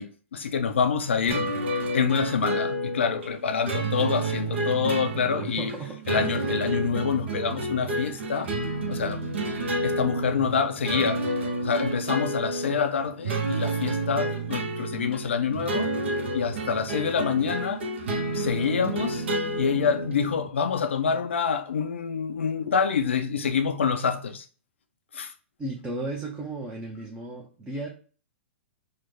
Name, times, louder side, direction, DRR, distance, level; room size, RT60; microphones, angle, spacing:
voice 1, 0.0-1.5 1.9-5.7 6.1-8.5 8.9-9.2 9.8-15.9 16.3-17.8 18.3-19.3 19.5-24.5 25.1-25.3, left 6 dB, 70° left, 0.4 m, -26 dB
sound 1, 1.3-20.5, right 2 dB, 60° right, 0.8 m, -30 dB
voice 2, 4.8-6.5 25.6-27.9, right 2 dB, 15° right, 0.7 m, -36 dB
3.1 x 2.2 x 3.6 m
figure-of-eight pair, 105°, 7 cm